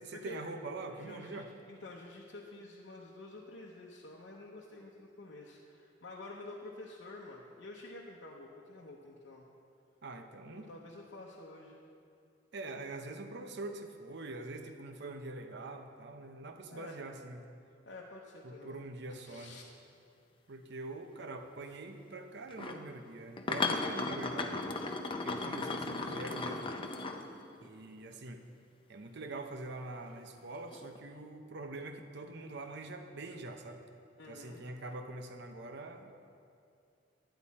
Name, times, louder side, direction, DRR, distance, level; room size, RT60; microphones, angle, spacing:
voice 1, 0.0-1.5 10.0-10.7 12.5-17.5 18.4-19.6 20.5-24.6 24.9-25.0 25.2-26.7 27.6-28.4 28.9-33.9 34.3-36.1, right 2 dB, 65° right, 6 dB, 0.8 m, -44 dB
voice 2, 1.0-9.4 10.5-11.8 16.7-17.0 17.8-18.8 19.1-19.6 34.2-34.6, left 2 dB, 75° left, -4 dB, 0.9 m, -49 dB
sound 1, 22.5-22.8 23.4-27.7 30.7-31.0, left 3 dB, 25° left, 0.6 m, -36 dB
10.5 x 10.5 x 4.2 m, 2.5 s
head